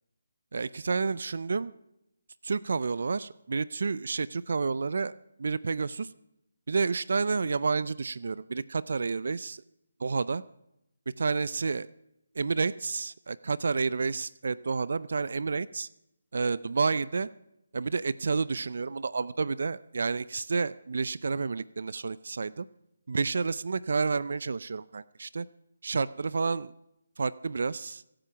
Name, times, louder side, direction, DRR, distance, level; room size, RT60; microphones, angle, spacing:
voice 1, 0.5-1.7 2.4-5.1 5.4-6.1 6.7-9.6 10.0-10.4 11.2-11.9 12.4-15.9 16.3-17.3 17.7-22.7 23.1-25.5 25.8-26.7 27.2-28.0, right 4 dB, 65° right, 18 dB, 0.5 m, -30 dB
24.0 x 8.9 x 5.8 m, 0.84 s
hypercardioid pair, 165°, 0 cm